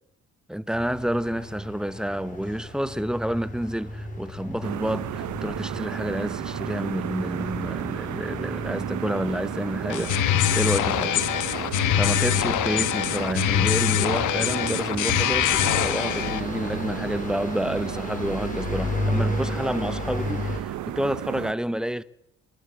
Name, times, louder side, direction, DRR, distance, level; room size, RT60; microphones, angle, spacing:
voice 1, 0.5-11.3 12.0-22.0, equal, ahead, 0.8 m, -29 dB
sound 1, 0.7-20.6, left 2 dB, 25° left, 5.5 m, -34 dB
sound 2, 4.6-21.5, right 13 dB, 75° right, 1.0 m, -34 dB
sound 3, 9.9-16.4, left 11 dB, 80° left, 1.4 m, -24 dB
28.0 x 11.5 x 8.6 m
cardioid pair, 90°, 30 cm